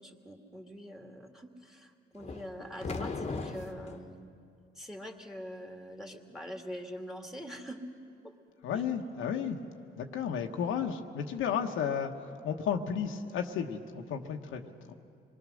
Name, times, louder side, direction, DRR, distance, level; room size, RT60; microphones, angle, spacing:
voice 1, 0.0-4.2 4.8-7.8 8.2-8.3 8.7-8.8, equal, ahead, 3 dB, 2.0 m, -44 dB
sound 1, 2.2-4.1, left 3 dB, 30° left, 1.3 m, -38 dB
voice 2, 8.6-9.6 10.0-14.9, left 7 dB, 85° left, 4 dB, 1.1 m, -33 dB
26.5 x 20.5 x 6.4 m, 2.4 s
cardioid pair, 90°, 20 cm